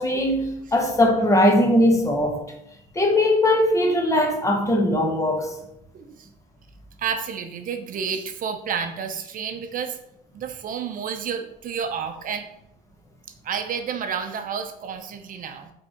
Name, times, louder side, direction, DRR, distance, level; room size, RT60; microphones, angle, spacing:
voice 1, 0.0-2.4 2.9-5.5, left 1 dB, 20° left, 2 dB, 1.5 m, -20 dB
voice 2, 5.9-6.3 7.0-10.0 10.3-12.5 13.4-15.7, right 7 dB, 55° right, 7 dB, 0.7 m, -30 dB
7.7 x 3.6 x 4.4 m, 0.81 s
cardioid pair, 110°, 17 cm